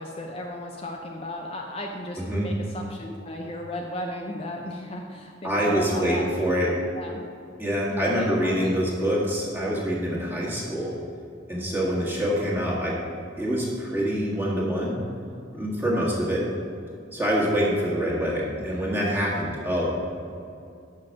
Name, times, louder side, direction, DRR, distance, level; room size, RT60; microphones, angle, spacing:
voice 1, 0.0-7.2 7.9-8.7, left 1 dB, 30° left, 1 dB, 0.5 m, -35 dB
voice 2, 5.4-6.7 7.6-10.9 11.5-12.9 13.4-15.0 15.5-16.4 17.1-19.9, equal, 10° right, -5 dB, 1.5 m, -25 dB
6.5 x 5.9 x 6.3 m, 2.5 s
head